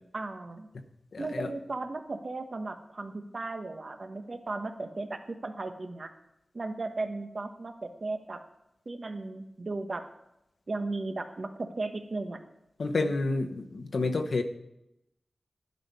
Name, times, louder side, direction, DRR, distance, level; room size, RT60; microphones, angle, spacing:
voice 1, 0.1-0.7 1.2-6.1 6.5-8.4 8.8-10.0 10.7-12.4, right 3 dB, 55° right, 7 dB, 1.2 m, -36 dB
voice 2, 1.1-1.5 12.8-14.4, left 3 dB, 80° left, 5 dB, 1.0 m, -29 dB
10.5 x 5.5 x 8.2 m, 0.84 s
wide cardioid pair, 65°, 0 cm